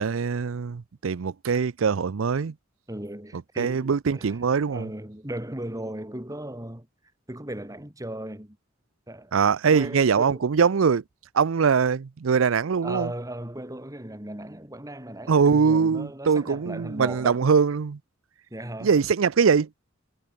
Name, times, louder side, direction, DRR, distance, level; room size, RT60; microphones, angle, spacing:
voice 1, 0.0-2.5 3.6-4.9 9.3-11.0 11.3-13.1 15.3-18.0 18.8-19.7, right 6 dB, 85° right, 0.5 m, -22 dB
voice 2, 2.9-4.4 4.7-6.9 7.3-8.6 9.1-9.3 9.7-10.4 12.8-17.4 18.5-18.9, right 1 dB, 15° right, 3.1 m, -37 dB
head